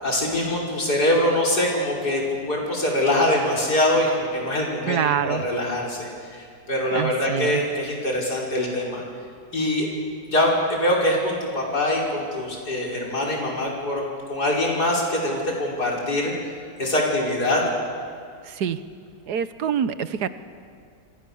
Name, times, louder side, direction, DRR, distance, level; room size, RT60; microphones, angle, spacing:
voice 1, 0.0-9.0 9.5-9.9 10.3-14.0 14.3-16.3 16.8-17.6, left 1 dB, 75° left, -3 dB, 6.1 m, -23 dB
voice 2, 4.9-5.4 6.9-7.6 18.4-18.8 19.3-20.3, right 8 dB, 80° right, 12 dB, 1.6 m, -25 dB
28.5 x 25.5 x 7.2 m, 2.2 s
omnidirectional pair, 1.7 m